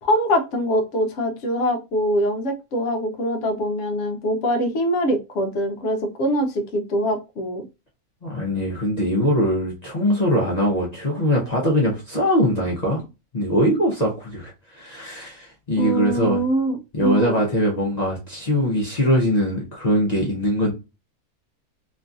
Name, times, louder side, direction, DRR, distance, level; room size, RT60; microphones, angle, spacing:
voice 1, 0.0-7.6 15.8-17.4, equal, 60° left, 0.9 m, -23 dB
voice 2, 8.2-13.0 13.3-16.4 16.9-20.7, equal, 40° left, 0.6 m, -22 dB
3.0 x 2.5 x 2.4 m
omnidirectional pair, 1.6 m